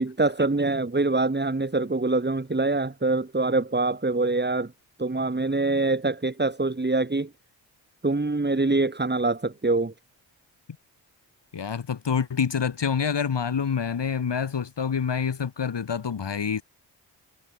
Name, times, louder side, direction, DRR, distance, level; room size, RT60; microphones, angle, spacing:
voice 1, 0.0-4.7 5.0-7.3 8.0-9.9, right 3 dB, 20° right, 3.2 m, -24 dB
voice 2, 11.5-16.6, left 6 dB, 60° left, 4.8 m, -27 dB
supercardioid pair, 45°, 48 cm